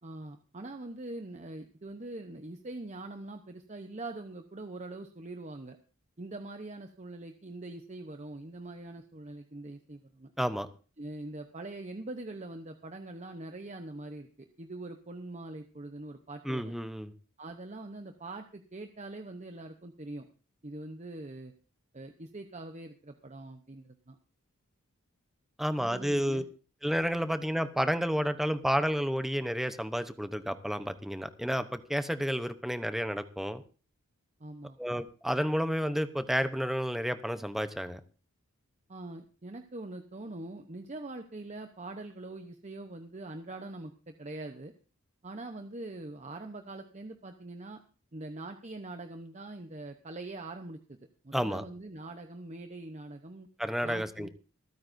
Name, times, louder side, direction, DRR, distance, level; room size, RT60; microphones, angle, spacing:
voice 1, 0.0-5.8 6.2-10.3 11.0-16.7 17.4-20.3 20.6-21.5 21.9-24.2 25.7-26.4 34.4-34.8 38.9-44.7 45.2-47.8 48.1-51.0 51.2-53.5 53.8-54.3, right 2 dB, 35° right, 6 dB, 0.8 m, -43 dB
voice 2, 10.4-10.7 16.4-17.1 25.6-26.4 26.8-33.6 34.8-38.0 51.3-51.6 53.6-54.3, equal, ahead, 10 dB, 0.8 m, -31 dB
26.0 x 9.5 x 2.6 m, 0.36 s
head